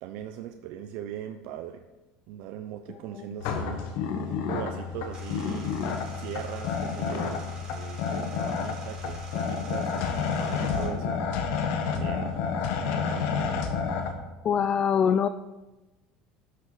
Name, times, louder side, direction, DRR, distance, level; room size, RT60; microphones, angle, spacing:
voice 1, 0.0-1.8 2.3-3.8 4.4-5.8 6.1-11.2 11.8-12.4 12.8-13.5, right 10 dB, 65° right, 7 dB, 0.5 m, -39 dB
sound 1, 3.4-14.1, left 6 dB, 70° left, 1.3 m, -30 dB
sound 2, 5.1-10.9, right 2 dB, 30° right, 3.6 m, -47 dB
voice 2, 14.4-15.3, left 7 dB, 35° left, 11 dB, 0.3 m, -23 dB
11.5 x 6.4 x 4.0 m, 1.1 s
supercardioid pair, 120°, 3 cm